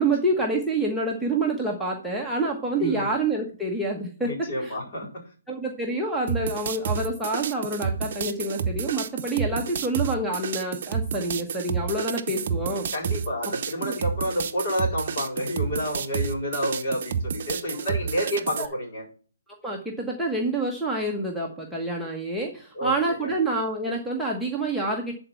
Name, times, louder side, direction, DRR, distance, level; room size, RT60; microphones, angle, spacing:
voice 1, 0.0-4.3 4.6-4.8 5.5-12.9 13.8-13.9 17.7-17.8 18.6-18.7 19.6-25.1, right 2 dB, ahead, -4 dB, 1.2 m, -27 dB
voice 2, 2.8-3.1 4.2-5.1 12.9-19.0 22.8-23.4, equal, 40° left, 0 dB, 4.4 m, -29 dB
sound 1, 6.3-18.7, right 6 dB, 45° right, 0.8 m, -30 dB
10.5 x 4.5 x 5.7 m, 0.40 s
figure-of-eight pair, 140°, 0 cm